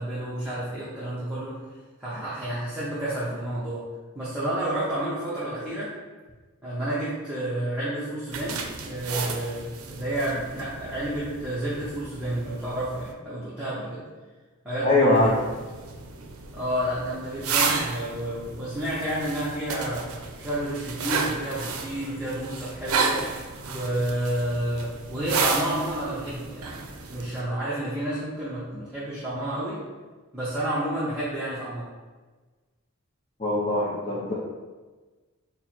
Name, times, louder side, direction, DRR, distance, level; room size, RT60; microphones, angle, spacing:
voice 1, 0.0-1.5 2.0-3.8 4.1-5.9 6.6-14.0 14.6-15.3 16.5-20.1 20.4-23.2 23.7-26.8 27.1-29.8 30.3-31.9, right 1 dB, 5° right, -12 dB, 0.7 m, -30 dB
sound 1, 8.3-13.1 15.2-27.4, right 5 dB, 75° right, 0.5 m, -32 dB
voice 2, 14.8-15.3 33.4-34.3, left 2 dB, 30° left, -6 dB, 0.5 m, -22 dB
4.4 x 2.1 x 4.3 m, 1.3 s
head